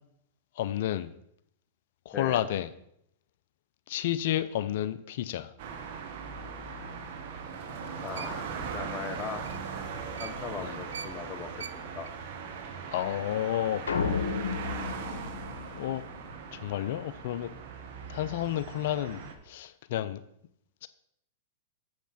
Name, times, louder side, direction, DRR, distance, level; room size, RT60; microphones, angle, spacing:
voice 1, 0.6-1.1 2.1-2.7 3.9-5.5 10.6-10.7 12.9-13.8 14.5-14.6 15.7-16.0 16.5-17.5 18.1-20.2 20.8-20.9, left 12 dB, 65° left, 14 dB, 0.4 m, -31 dB
sound 1, 5.6-19.3, right 5 dB, 60° right, 1.3 m, -40 dB
sound 2, 7.7-10.6 10.9-12.6, right 6 dB, 85° right, 0.4 m, -45 dB
voice 2, 8.0-9.6 9.9-12.1, left 6 dB, 25° left, 7 dB, 1.0 m, -40 dB
sound 3, 13.9-16.3, left 5 dB, 85° left, 1.0 m, -32 dB
7.2 x 5.9 x 5.8 m, 0.74 s
hypercardioid pair, 110°, 0 cm